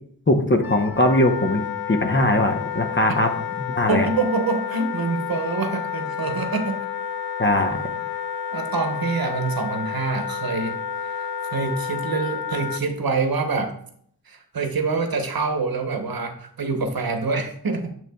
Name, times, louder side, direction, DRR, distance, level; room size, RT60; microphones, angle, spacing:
voice 1, 0.3-3.3 3.6-4.1 7.4-7.8, left 1 dB, 30° left, 5 dB, 0.8 m, -20 dB
Wind instrument woodwind instrument, 0.6-12.8, left 7 dB, 75° left, 0.5 m, -30 dB
voice 2, 3.9-6.8 8.5-10.8 11.0-13.8 14.3-17.9, right 4 dB, 70° right, 6 dB, 0.9 m, -26 dB
6.9 x 6.5 x 2.3 m, 0.64 s
wide cardioid pair, 80°, 37 cm